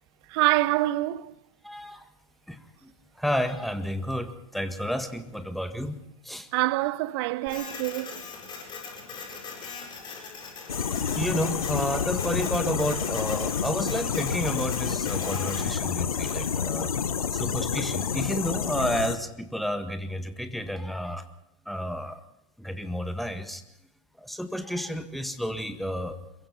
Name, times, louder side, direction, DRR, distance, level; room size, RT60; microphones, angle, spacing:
voice 1, 0.3-1.3 6.5-8.2, right 18 dB, 45° right, 0.9 m, -26 dB
voice 2, 1.6-2.1 2.5-6.5 9.6-9.9 11.2-16.9 17.3-21.3 21.7-22.2 22.6-23.6 24.2-26.2, equal, ahead, 1.7 m, -31 dB
Printer, 7.5-16.5, left 5 dB, 25° left, 7.9 m, -41 dB
sound 1, 10.7-19.2, left 7 dB, 80° left, 1.0 m, -29 dB
26.5 x 23.0 x 4.4 m
figure-of-eight pair, 105°, 18 cm